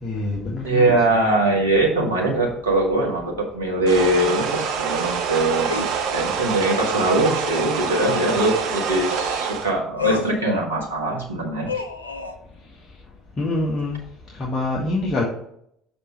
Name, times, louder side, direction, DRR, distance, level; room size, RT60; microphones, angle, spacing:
voice 1, 0.0-1.0 13.4-14.0 14.4-15.2, left 2 dB, 30° left, -4 dB, 1.6 m, -25 dB
voice 2, 0.6-5.8 6.1-11.7, right 2 dB, 75° right, -1 dB, 1.6 m, -22 dB
sound 1, 3.9-9.7, right 6 dB, 55° right, 0.8 m, -26 dB
sound 2, 5.7-6.0 8.0-8.3 10.0-10.4 11.7-12.4, left 5 dB, 85° left, 0.6 m, -27 dB
6.5 x 4.3 x 5.1 m, 0.70 s
figure-of-eight pair, 60°, 0 cm